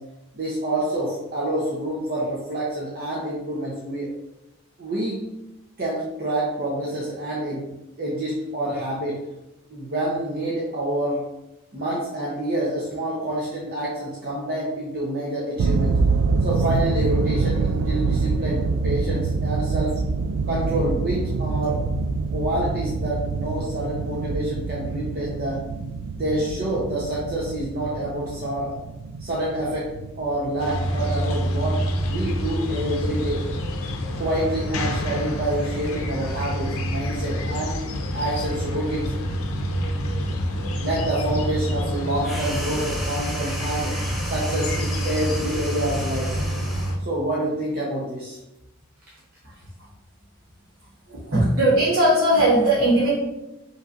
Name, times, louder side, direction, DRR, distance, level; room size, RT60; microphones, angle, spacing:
voice 1, 0.4-4.1 4.8-5.2 5.8-7.7 8.0-9.2 9.7-11.2 11.7-16.0 16.4-20.0 20.5-21.8 22.3-25.6 26.1-28.7 29.2-29.9 30.2-33.4 34.2-37.8 38.1-39.1 40.8-43.9 44.2-46.3 47.0-48.4, right 1 dB, 45° right, -5 dB, 0.8 m, -27 dB
sound 1, 15.6-31.8, right 4 dB, 90° right, 0.3 m, -26 dB
sound 2, 30.6-47.0, equal, 85° left, 0.5 m, -27 dB
sound 3, 42.2-47.0, equal, ahead, 0.5 m, -35 dB
voice 2, 51.1-53.1, right 1 dB, 70° right, -8 dB, 1.1 m, -19 dB
5.3 x 3.2 x 2.5 m, 0.93 s
head